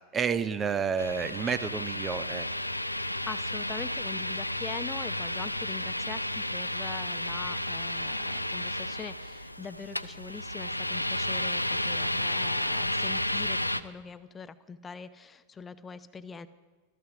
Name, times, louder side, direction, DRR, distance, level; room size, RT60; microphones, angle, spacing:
voice 1, 0.1-2.5, right 6 dB, 20° right, 12 dB, 0.6 m, -30 dB
sound 1, 1.0-13.8, left 1 dB, 85° left, 0.5 m, -32 dB
voice 2, 3.3-16.5, left 5 dB, 20° left, 13 dB, 0.7 m, -43 dB
14.5 x 14.0 x 6.0 m, 1.3 s
figure-of-eight pair, 90°, 0 cm